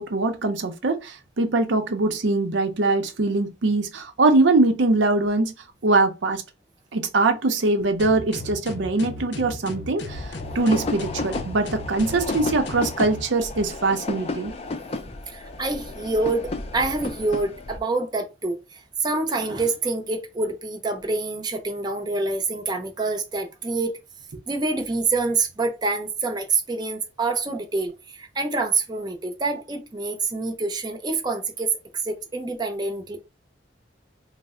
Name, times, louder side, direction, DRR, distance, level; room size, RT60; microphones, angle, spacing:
voice 1, 0.0-5.5 5.8-6.4 6.9-14.5, right 2 dB, 85° right, 0.6 m, -22 dB
sound 1, 8.0-13.3, left 2 dB, 70° left, 0.6 m, -36 dB
sound 2, 10.1-17.8, left 2 dB, 35° left, 0.4 m, -33 dB
voice 2, 15.3-24.0 24.5-33.2, right 3 dB, 25° right, 0.6 m, -26 dB
3.2 x 2.0 x 3.5 m
head